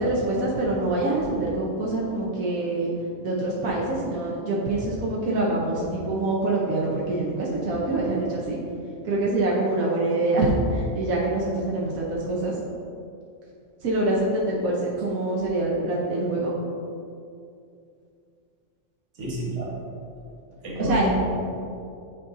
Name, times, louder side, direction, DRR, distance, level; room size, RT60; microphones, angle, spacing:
voice 1, 0.0-2.9 3.2-8.6 9.0-12.5 13.8-16.5 20.7-21.1, right 2 dB, 85° right, -4 dB, 1.4 m, -25 dB
voice 2, 19.1-19.8 20.6-21.4, equal, 60° right, -4 dB, 1.7 m, -29 dB
9.5 x 4.0 x 3.8 m, 2.4 s
omnidirectional pair, 1.4 m